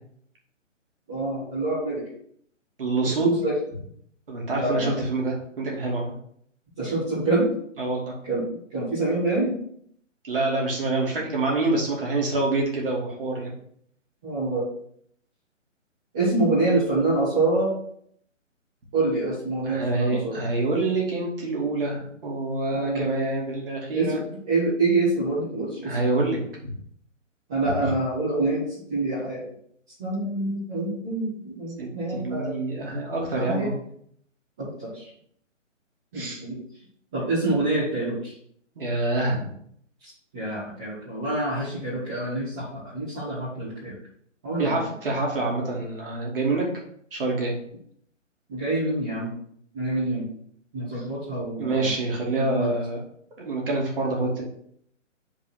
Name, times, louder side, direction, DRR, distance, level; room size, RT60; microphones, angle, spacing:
voice 1, 1.1-2.1 3.0-3.5 4.5-5.0 6.8-7.5 8.2-9.6 14.2-14.7 16.1-17.7 18.9-20.4 22.7-23.2 23.9-26.0 27.5-29.5 30.0-32.6 33.3-33.7 34.6-35.1 36.1-36.6 37.1-38.3 40.0-44.0 44.4-44.8 48.5-49.3 49.7-50.3 50.7-51.9 52.4-52.7, right 2 dB, 5° right, -13 dB, 0.6 m, -26 dB
voice 2, 2.8-3.3 4.3-6.1 7.8-8.1 10.2-13.5 19.7-24.2 25.8-26.7 27.8-27.9 31.8-33.8 36.1-36.4 38.8-39.5 44.6-46.6 47.1-47.5 51.6-53.0 53.4-54.5, right 2 dB, 45° right, -2 dB, 2.7 m, -26 dB
5.4 x 4.7 x 6.1 m, 0.65 s
figure-of-eight pair, 140°, 38 cm